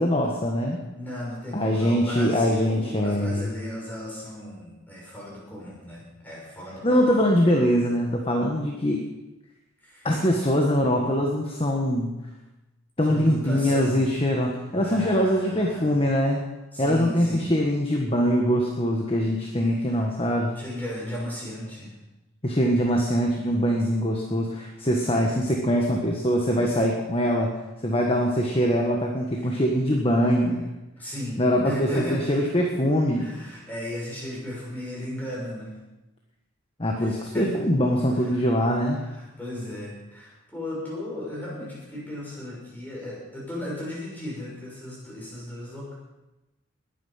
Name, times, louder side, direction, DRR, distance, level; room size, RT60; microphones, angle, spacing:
voice 1, 0.0-0.8 1.5-3.5 6.8-9.0 10.0-12.1 13.0-16.4 16.8-20.5 22.4-27.5 27.8-30.6 31.4-33.3 36.8-39.0, equal, 25° left, 1 dB, 1.5 m, -23 dB
voice 2, 0.9-7.2 9.8-10.1 13.0-14.0 14.7-16.0 16.7-17.5 19.6-20.0 20.5-22.0 23.4-23.5 26.5-26.7 29.4-29.5 29.9-30.0 30.4-30.5 31.0-32.5 32.9-35.7 37.0-37.5 38.2-38.4 39.0-45.9, left 1 dB, 10° left, -5 dB, 6.4 m, -36 dB
20.5 x 9.4 x 5.8 m, 1.0 s
head